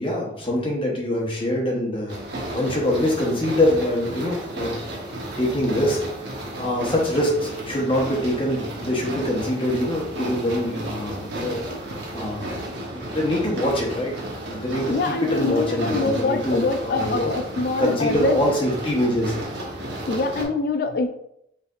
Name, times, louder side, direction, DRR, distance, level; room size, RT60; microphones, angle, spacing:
voice 1, 0.0-2.2 2.5-4.7 5.4-6.0 6.6-11.6 12.1-12.4 13.1-14.2 14.4-17.3 17.8-19.3, left 1 dB, 30° left, -2 dB, 1.0 m, -24 dB
sound 1, 2.1-20.4, right 1 dB, 65° right, 1.0 m, -33 dB
voice 2, 14.9-18.4 20.1-21.1, left 3 dB, 50° left, 7 dB, 0.3 m, -24 dB
4.9 x 3.3 x 2.4 m, 0.77 s
head